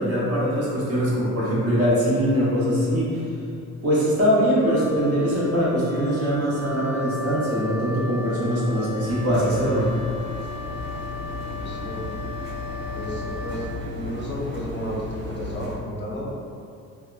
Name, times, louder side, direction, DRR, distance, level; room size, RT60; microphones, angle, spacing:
voice 1, 0.0-3.2 3.8-9.9, equal, 50° right, -8 dB, 0.9 m, -22 dB
Wind instrument woodwind instrument, 4.6-13.7, left 4 dB, 85° right, 0.5 m, -36 dB
Engine, 9.0-15.8, left 2 dB, 35° right, 0.6 m, -35 dB
voice 2, 11.6-12.1 12.9-15.0 15.3-16.3, equal, 40° left, -5 dB, 0.6 m, -33 dB
2.8 x 2.2 x 2.3 m, 2.4 s
cardioid pair, 90°, 30 cm